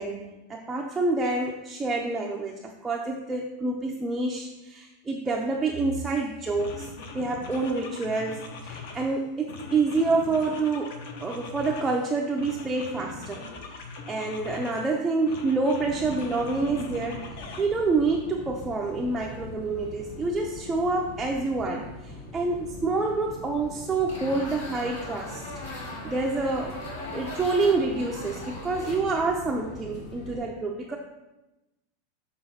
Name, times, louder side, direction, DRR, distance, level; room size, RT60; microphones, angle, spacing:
voice 1, 0.0-10.9 11.2-13.5 14.1-17.2 17.6-25.5 26.0-26.8 27.1-31.0, right 3 dB, 10° right, -1 dB, 0.4 m, -27 dB
sound 1, 6.0-6.2 6.6-9.1 9.5-12.0 12.4-14.9 15.3-17.6, left 3 dB, 60° left, 0.9 m, -41 dB
sound 2, 15.8-30.4, left 1 dB, 40° left, 2.5 m, -42 dB
sound 3, 24.1-29.0, left 2 dB, 85° left, 2.6 m, -40 dB
6.9 x 3.5 x 5.6 m, 0.98 s
supercardioid pair, 170°, 0 cm